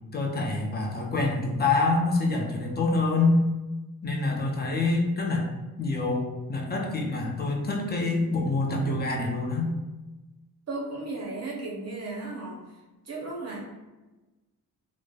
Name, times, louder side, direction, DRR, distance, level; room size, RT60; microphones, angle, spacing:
voice 1, 0.1-3.4 4.0-5.5 5.8-9.7, left 3 dB, 25° left, 0 dB, 0.5 m, -26 dB
voice 2, 10.7-12.6 13.1-13.6, right 2 dB, 45° right, -3 dB, 0.6 m, -35 dB
3.1 x 2.0 x 2.2 m, 1.1 s
cardioid pair, 95°, 38 cm